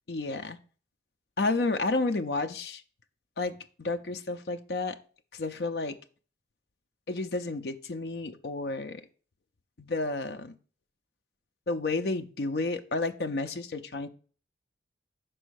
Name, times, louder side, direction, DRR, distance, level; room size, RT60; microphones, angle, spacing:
voice 1, 0.1-0.6 1.4-2.8 3.4-5.0 5.3-6.0 7.1-9.0 9.8-10.5 11.7-14.1, left 3 dB, 60° left, 7 dB, 0.6 m, -31 dB
6.1 x 4.4 x 6.3 m, 0.39 s
head